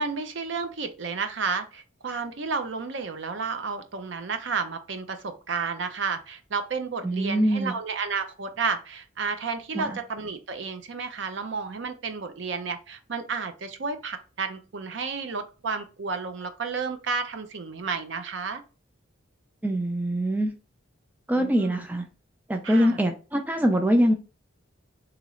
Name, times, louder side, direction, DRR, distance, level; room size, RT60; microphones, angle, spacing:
voice 1, 0.0-18.6 21.3-21.9 22.6-23.0, right 5 dB, 60° right, 0.5 m, -31 dB
voice 2, 7.0-7.7 9.7-10.0 19.6-20.5 21.3-22.0 22.5-24.1, equal, 10° right, 0.3 m, -23 dB
3.1 x 2.9 x 3.6 m
head